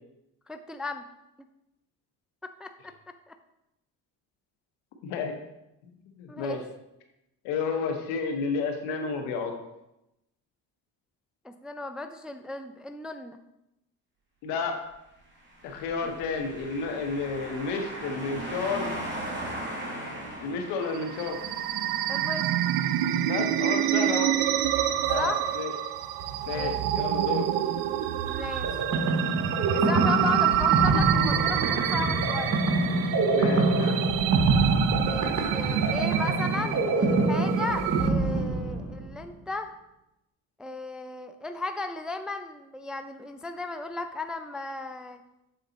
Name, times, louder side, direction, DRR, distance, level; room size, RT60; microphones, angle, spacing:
voice 1, 0.5-1.0 2.4-2.9 3.3-3.4 6.3-6.6 11.4-13.4 16.0-16.2 22.1-22.5 25.1-25.4 26.5-26.8 28.2-28.8 29.7-32.6 33.5-33.9 35.0-39.7 40.6-45.2, left 3 dB, ahead, 7 dB, 0.3 m, -35 dB
voice 2, 5.0-5.3 6.1-6.6 7.4-9.6 14.4-14.8 15.6-18.9 20.4-21.4 23.2-24.3 25.0-25.7 26.5-27.5 33.3-34.0, left 4 dB, 90° left, 4 dB, 1.1 m, -31 dB
sound 1, 15.5-22.3, right 1 dB, 30° right, 1.9 m, -38 dB
sound 2, 20.8-38.1, right 11 dB, 85° right, 0.5 m, -28 dB
sound 3, 28.6-39.2, right 2 dB, 45° right, 1.3 m, -25 dB
7.0 x 4.0 x 4.0 m, 0.89 s
supercardioid pair, 80°, 40 cm